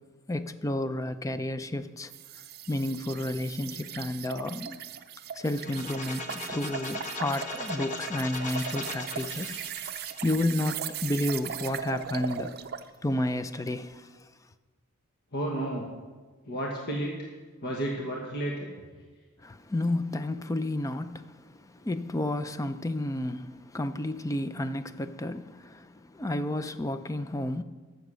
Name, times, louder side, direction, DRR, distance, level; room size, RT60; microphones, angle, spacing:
voice 1, 0.3-2.1 2.7-4.8 5.4-9.6 10.2-12.5 13.0-14.1 19.4-21.3 21.7-27.6, left 1 dB, 15° left, 0.4 m, -31 dB
sound 1, 2.1-12.9, right 8 dB, 50° right, 0.5 m, -38 dB
sound 2, 5.6-11.4, left 3 dB, 35° left, 1.1 m, -39 dB
voice 2, 15.3-15.9 16.5-17.3 17.6-18.7, right 1 dB, 55° left, 1.3 m, -32 dB
13.0 x 7.1 x 6.2 m
head